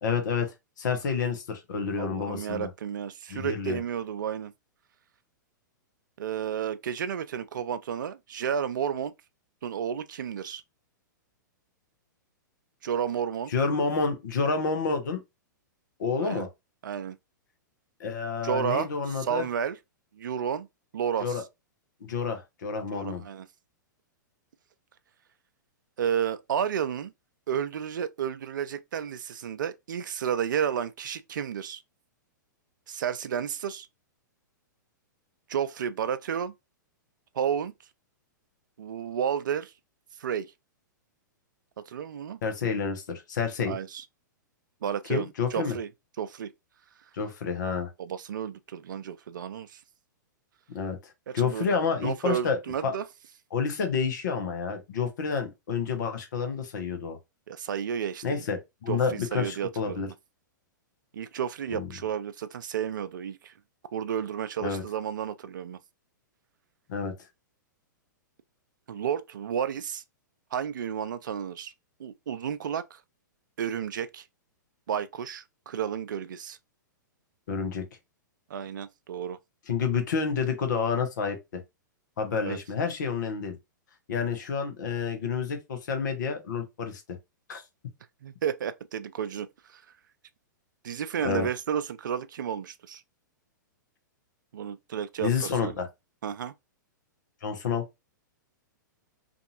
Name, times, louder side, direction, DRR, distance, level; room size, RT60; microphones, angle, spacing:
voice 1, 0.0-2.7 3.3-3.8 13.5-15.2 16.0-16.5 18.0-19.4 21.2-21.4 22.0-23.2 42.4-43.7 45.0-45.7 47.1-47.9 50.7-52.9 53.5-57.2 58.2-58.6 58.8-60.1 61.7-61.9 64.6-64.8 66.9-67.1 77.5-77.8 79.7-81.4 82.2-83.6 84.1-87.0 87.5-87.6 91.2-91.5 95.2-95.9 97.4-97.8, left 5 dB, 65° left, 0.9 m, -29 dB
voice 2, 2.0-4.5 6.2-9.1 9.6-10.6 12.8-13.5 16.2-16.5 16.8-17.2 18.4-19.8 20.1-20.7 20.9-21.4 22.9-23.5 26.0-27.1 27.5-31.8 32.9-33.9 35.5-36.5 37.3-37.7 38.8-39.7 40.2-40.5 41.8-42.4 43.7-44.0 44.8-45.9 46.2-46.5 48.0-49.8 51.3-51.7 52.0-53.0 57.5-58.4 58.9-60.1 61.1-63.5 63.9-65.8 68.9-70.0 70.5-71.7 72.0-73.0 73.6-74.2 74.9-76.6 78.5-79.4 82.4-82.6 88.2-89.8 90.8-93.0 94.5-95.7 96.2-96.5, right 8 dB, 70° right, 0.4 m, -32 dB
2.6 x 2.6 x 2.7 m
hypercardioid pair, 110°, 11 cm